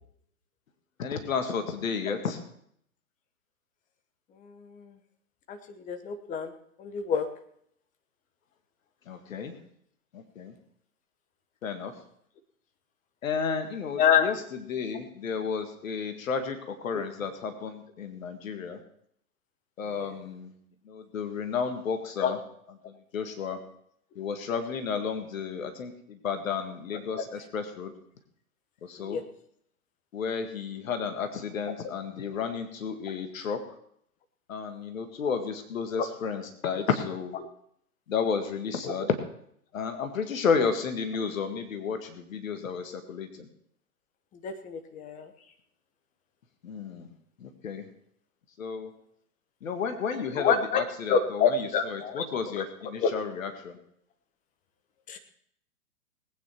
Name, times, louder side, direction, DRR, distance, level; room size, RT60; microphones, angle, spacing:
voice 1, 1.0-2.4 9.1-9.5 10.1-10.5 11.6-11.9 13.2-18.8 19.8-20.5 20.9-22.4 22.9-23.6 24.2-27.9 28.8-29.2 30.1-33.6 34.5-37.4 38.1-39.2 39.7-43.5 46.6-47.1 47.4-47.8 48.6-48.9 49.6-53.8, left 6 dB, 60° left, 7 dB, 2.0 m, -32 dB
voice 2, 4.4-4.9 5.5-6.5 6.8-7.3 14.0-14.3 16.9-17.0 20.0-20.1 22.2-22.3 27.1-27.2 29.0-29.2 33.1-33.2 44.4-45.3 50.4-50.8 51.1-52.2 52.6-52.7 53.0-53.1 55.1-55.2, left 7 dB, 15° left, 8 dB, 1.2 m, -27 dB
19.5 x 9.4 x 4.6 m, 0.67 s
hypercardioid pair, 125°, 46 cm